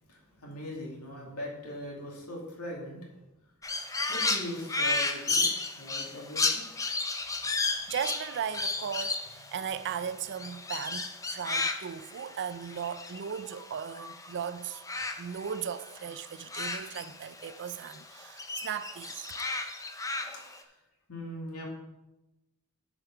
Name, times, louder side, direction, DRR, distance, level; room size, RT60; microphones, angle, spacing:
voice 1, 0.1-3.1 4.1-5.5 5.8-6.7 20.2-20.7 21.1-21.7, left 1 dB, 90° left, 2.5 m, -40 dB
Crow, 3.6-14.3 14.6-17.6 17.9-20.6, left 3 dB, 15° left, 0.7 m, -33 dB
voice 2, 7.9-14.8 15.2-19.3, right 7 dB, 55° right, 0.4 m, -37 dB
9.0 x 5.1 x 5.9 m
head